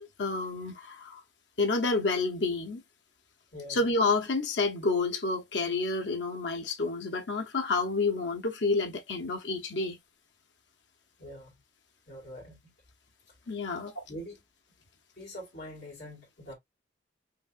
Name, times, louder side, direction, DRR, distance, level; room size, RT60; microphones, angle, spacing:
voice 1, 0.2-1.2 1.6-2.8 3.7-10.0 13.5-13.9, left 3 dB, 75° left, 1.0 m, -29 dB
voice 2, 11.2-11.5 12.1-12.7 13.8-14.4 15.2-16.5, equal, 50° left, 2.3 m, -43 dB
5.1 x 2.9 x 2.5 m
head